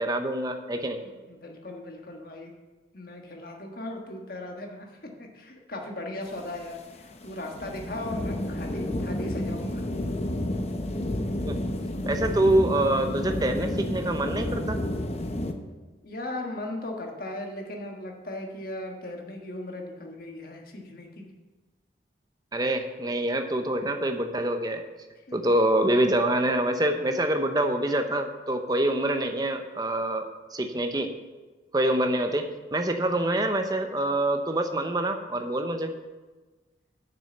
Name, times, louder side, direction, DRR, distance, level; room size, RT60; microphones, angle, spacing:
voice 1, 0.0-1.0 11.5-11.6 12.1-14.8 22.5-24.8 25.3-30.3 30.5-31.1 31.7-35.9, right 1 dB, 20° right, 6 dB, 0.7 m, -25 dB
voice 2, 1.0-2.6 2.9-9.9 16.0-21.3 33.0-33.3, left 1 dB, 50° left, 1 dB, 1.5 m, -38 dB
sound 1, 6.3-15.5, left 1 dB, 35° left, 0.7 m, -30 dB
6.9 x 6.8 x 7.8 m, 1.2 s
head